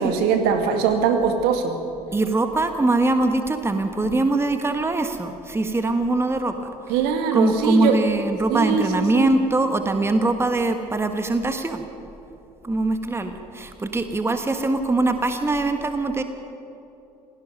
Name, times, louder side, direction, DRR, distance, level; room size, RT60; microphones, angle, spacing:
voice 1, 0.0-1.8 6.9-8.0 8.5-8.8 9.1-9.3, right 6 dB, 55° right, 6 dB, 2.0 m, -21 dB
voice 2, 2.1-7.0 7.3-11.8 12.6-16.2, right 2 dB, 15° right, 7 dB, 1.4 m, -22 dB
27.5 x 17.5 x 5.3 m, 2.8 s
figure-of-eight pair, 60°, 19 cm